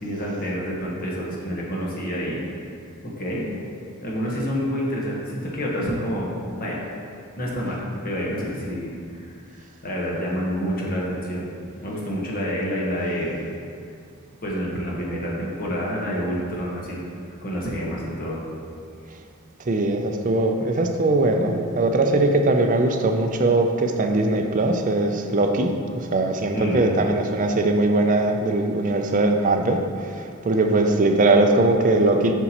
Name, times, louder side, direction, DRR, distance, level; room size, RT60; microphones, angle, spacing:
voice 1, 0.0-2.4 3.2-3.5 4.0-6.3 6.6-6.8 7.4-11.5 11.8-13.4 14.4-17.0 17.4-18.4 26.5-26.8, equal, 45° left, -4 dB, 1.2 m, -28 dB
voice 2, 19.7-32.3, right 2 dB, 40° right, 4 dB, 0.5 m, -20 dB
sound 1, 21.3-24.7, right 1 dB, 85° right, 0.5 m, -38 dB
8.0 x 5.0 x 3.0 m, 2.3 s
head